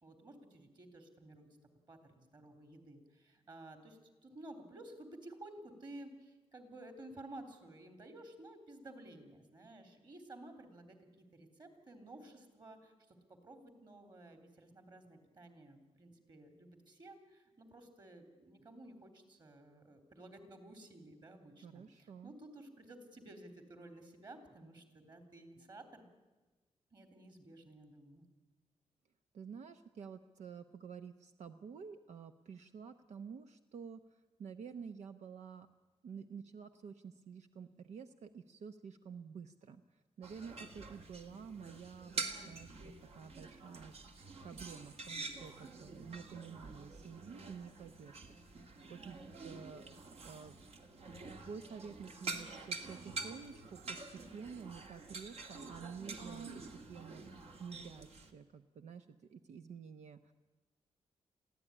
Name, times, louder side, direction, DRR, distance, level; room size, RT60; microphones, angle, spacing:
voice 1, 0.0-1.5 1.9-26.0 26.9-28.3, right 1 dB, 40° right, 7 dB, 3.7 m, -54 dB
voice 2, 21.6-22.3 29.3-35.7 36.0-44.0 44.4-48.2 48.5-49.2 49.4-50.0 50.2-50.6 51.4-60.3, right 6 dB, 85° right, 9 dB, 0.8 m, -50 dB
sound 1, 40.2-58.3, right 3 dB, 65° right, 2.2 m, -47 dB
22.5 x 15.5 x 9.9 m, 1.2 s
wide cardioid pair, 120°, 11 cm